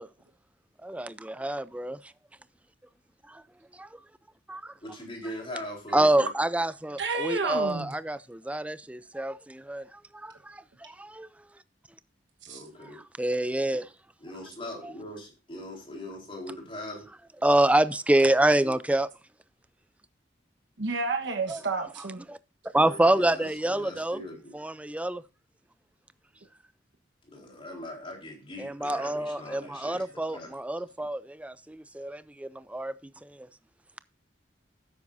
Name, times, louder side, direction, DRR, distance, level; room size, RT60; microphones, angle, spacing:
voice 1, 0.8-2.0 3.8-3.9 4.5-4.6 5.9-9.8 10.2-11.3 13.2-13.9 17.4-19.1 21.5-21.6 22.3-22.4 22.7-24.2 24.5-25.2 28.6-32.9, right 1 dB, 5° right, 0.4 m, -26 dB
voice 2, 4.8-6.3 12.5-13.0 14.2-17.0 22.8-24.5 27.2-30.5, left 1 dB, 30° left, 4.1 m, -41 dB
voice 3, 7.0-7.9 12.4-12.6 20.8-22.2, right 3 dB, 70° right, 1.3 m, -30 dB
12.5 x 9.5 x 2.6 m
head